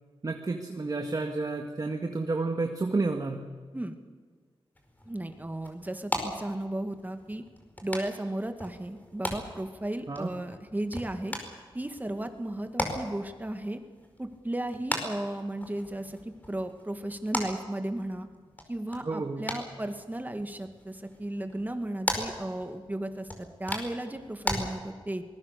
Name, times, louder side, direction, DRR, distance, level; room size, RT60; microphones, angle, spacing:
voice 1, 0.2-3.5 10.1-10.3 19.0-19.5, right 3 dB, 40° right, 4 dB, 1.8 m, -30 dB
sound 1, 4.7-24.6, left 1 dB, 20° left, 4.5 m, -39 dB
voice 2, 5.1-7.4 7.8-11.4 11.7-13.8 14.2-18.3 18.7-25.2, right 1 dB, 20° right, 7 dB, 2.0 m, -35 dB
24.0 x 20.5 x 6.7 m, 1.5 s
wide cardioid pair, 85°, 9 cm